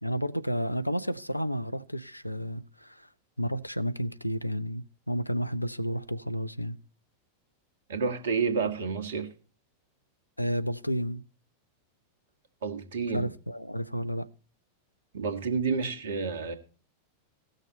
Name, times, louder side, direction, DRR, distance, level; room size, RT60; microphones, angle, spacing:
voice 1, 0.0-3.1 3.4-6.8 10.4-11.2 13.1-14.3, equal, 90° left, 0.5 m, -31 dB
voice 2, 7.9-9.3 12.6-13.3 15.1-16.5, right 5 dB, 60° right, 1.6 m, -29 dB
16.5 x 6.5 x 4.1 m
figure-of-eight pair, 90°, 0 cm